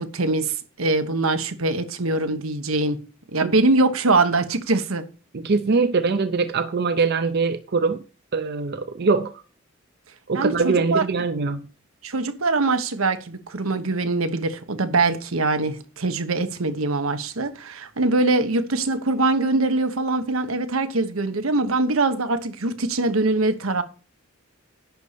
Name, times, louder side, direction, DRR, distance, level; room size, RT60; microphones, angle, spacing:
voice 1, 0.0-3.0 3.3-5.1 10.3-11.0 12.0-23.8, right 3 dB, 90° right, 1.1 m, -23 dB
voice 2, 5.3-8.0 8.3-9.3 10.3-11.7, right 4 dB, 55° right, 0.6 m, -22 dB
10.5 x 4.2 x 6.7 m
head